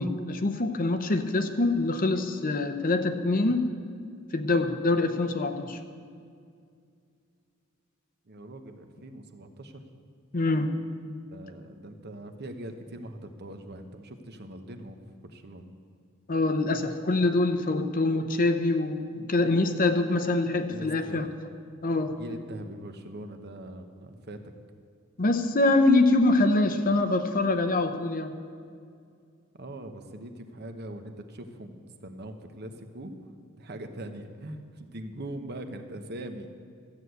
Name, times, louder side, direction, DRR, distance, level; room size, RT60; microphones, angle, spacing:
voice 1, 0.0-3.7 4.3-5.8 10.3-10.7 16.3-21.3 21.8-22.1 25.2-28.4, left 2 dB, 40° left, 8 dB, 0.7 m, -24 dB
voice 2, 8.3-9.8 11.3-15.0 15.2-15.7 20.4-21.2 22.1-24.4 29.5-33.1 33.6-36.6, right 1 dB, 50° right, 7 dB, 1.0 m, -42 dB
13.5 x 7.9 x 8.1 m, 2.3 s
head